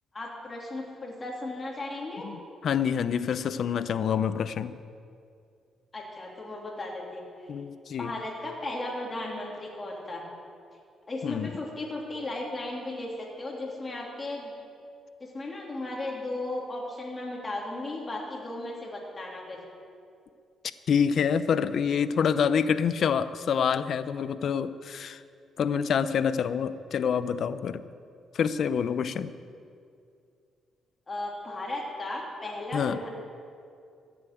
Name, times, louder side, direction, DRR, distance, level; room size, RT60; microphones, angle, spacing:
voice 1, 0.1-2.2 5.9-7.5 8.0-10.2 11.1-14.5 15.2-19.6 31.1-33.1, left 2 dB, 25° left, -2 dB, 3.1 m, -36 dB
voice 2, 2.2-4.8 7.5-8.1 11.2-11.5 20.9-25.2 25.6-27.8 28.3-29.3 32.7-33.0, left 7 dB, 60° left, 14 dB, 0.6 m, -27 dB
14.5 x 7.3 x 9.3 m, 2.4 s
cardioid pair, 90°, 0 cm